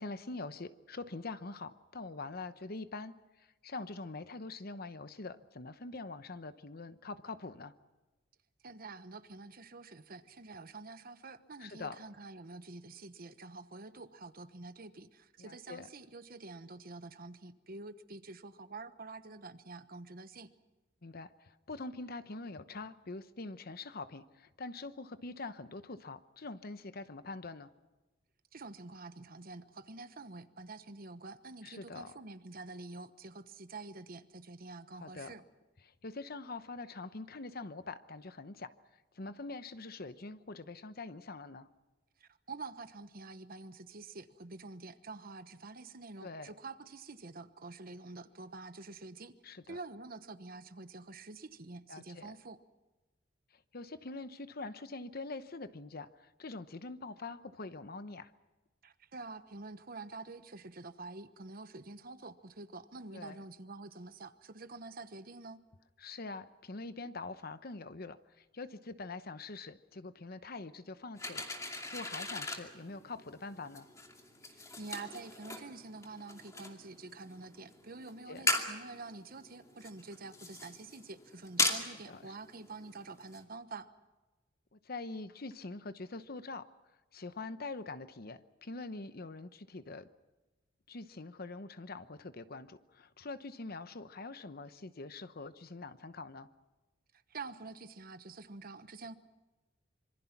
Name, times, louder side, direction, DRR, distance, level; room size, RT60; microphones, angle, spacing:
voice 1, 0.0-7.7 11.6-12.0 15.4-15.9 21.0-27.7 31.6-32.1 35.0-35.3 35.8-38.7 39.1-41.7 46.2-46.5 49.4-49.8 51.9-52.3 53.7-58.3 63.1-63.4 66.0-71.5 71.9-73.9 78.3-78.5 81.8-82.4 84.7-86.7 87.1-90.1 90.9-96.5, left 3 dB, 55° left, 12 dB, 1.0 m, -44 dB
voice 2, 8.6-20.5 28.5-35.4 42.2-49.3 49.7-52.6 58.8-65.6 74.5-83.9 97.3-99.1, right 3 dB, 50° right, 11 dB, 1.1 m, -47 dB
sound 1, 71.2-83.4, left 2 dB, 15° left, 2.5 m, -39 dB
26.5 x 24.5 x 6.0 m, 1.1 s
head